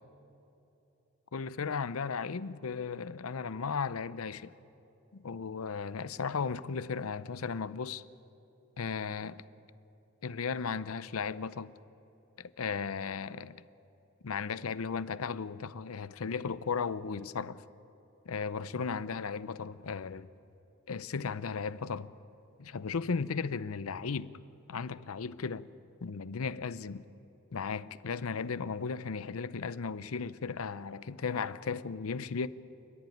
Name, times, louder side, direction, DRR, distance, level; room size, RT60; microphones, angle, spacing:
voice 1, 1.3-4.5 5.1-8.0 8.8-9.4 10.2-11.8 12.4-13.6 14.2-17.6 18.3-20.3 20.9-22.1 22.6-24.3 24.7-25.7 26.0-27.1 27.5-32.5, left 5 dB, 90° left, 0.6 m, -35 dB
29.0 x 11.0 x 9.3 m
head